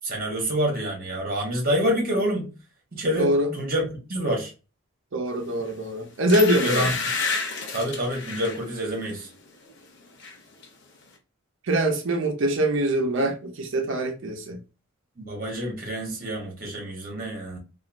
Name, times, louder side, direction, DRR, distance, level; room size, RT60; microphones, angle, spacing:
voice 1, 0.0-2.5 2.9-3.8 4.1-4.5 6.6-6.9 7.7-9.3 15.2-17.6, equal, 40° right, 1.1 m, -27 dB
voice 2, 3.2-3.5 5.1-6.9 11.7-14.6, right 1 dB, 55° right, 0.6 m, -23 dB
sound 1, 5.6-5.8 6.3-8.6 9.1-9.3 9.6-10.4 10.6-10.7, left 4 dB, 50° left, 0.6 m, -29 dB
3.0 x 2.4 x 2.4 m
head